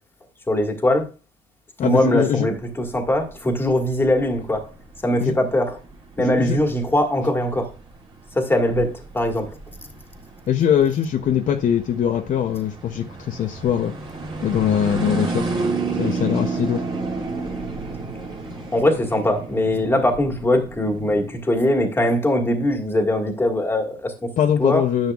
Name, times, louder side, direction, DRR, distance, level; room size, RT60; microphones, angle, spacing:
voice 1, 0.5-1.1 1.8-4.7 5.0-5.8 6.2-7.7 8.3-9.5 18.7-24.3 24.6-24.9, left 1 dB, 15° left, 1.7 m, -21 dB
voice 2, 1.8-2.5 5.2-5.3 6.2-6.6 10.5-13.9 14.4-15.4 16.0-16.8 24.4-25.1, left 9 dB, 50° left, 0.6 m, -21 dB
sound 1, 2.4-21.4, right 3 dB, 30° right, 2.1 m, -32 dB
10.5 x 6.5 x 2.3 m
cardioid pair, 110°, 17 cm